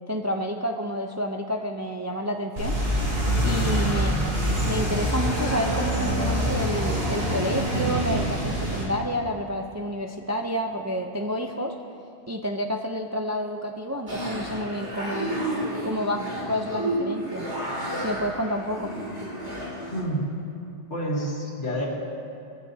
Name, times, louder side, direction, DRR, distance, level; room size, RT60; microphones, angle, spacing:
voice 1, 0.1-2.8 3.4-11.7 12.3-15.3 15.8-17.5 18.0-18.9, equal, 20° right, 3 dB, 0.4 m, -29 dB
sound 1, 2.6-8.8, right 1 dB, 45° right, 3.5 m, -25 dB
voice 2, 3.4-4.0 19.9-20.3 20.9-22.0, right 1 dB, 75° left, -5 dB, 3.0 m, -29 dB
sound 2, 14.1-20.0, right 1 dB, 70° right, 3.0 m, -31 dB
19.5 x 15.5 x 2.8 m, 2.6 s
omnidirectional pair, 1.2 m